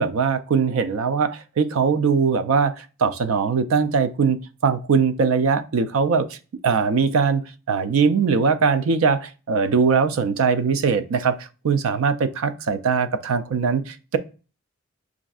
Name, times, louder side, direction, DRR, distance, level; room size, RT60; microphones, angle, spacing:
voice 1, 0.0-6.3 6.6-7.4 7.7-14.2, right 5 dB, 70° right, 0.4 m, -21 dB
6.0 x 2.5 x 2.4 m
head